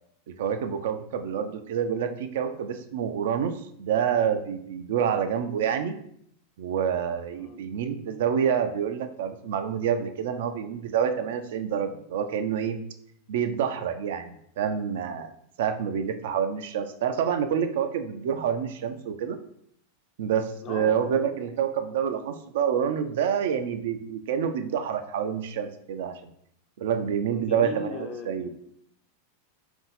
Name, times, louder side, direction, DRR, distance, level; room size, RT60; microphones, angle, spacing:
voice 1, 0.4-3.5 3.8-6.0 6.6-12.8 13.3-15.3 15.6-19.4 20.2-26.3 26.8-28.5, right 8 dB, 55° right, 7 dB, 0.3 m, -27 dB
voice 2, 20.6-21.4 21.8-22.0 27.3-28.5, left 3 dB, 30° left, 4 dB, 0.5 m, -39 dB
3.6 x 2.6 x 4.0 m, 0.69 s
figure-of-eight pair, 90°, 0 cm